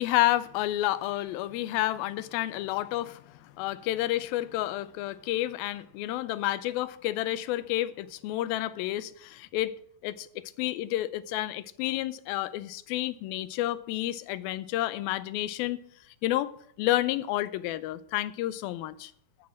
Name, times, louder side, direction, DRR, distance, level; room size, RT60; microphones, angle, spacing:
voice 1, 0.0-9.7 10.0-10.3 10.6-15.8 16.2-16.5 16.8-19.1, left 15 dB, 90° left, 2.5 m, -30 dB
13.5 x 6.2 x 7.4 m
omnidirectional pair, 4.1 m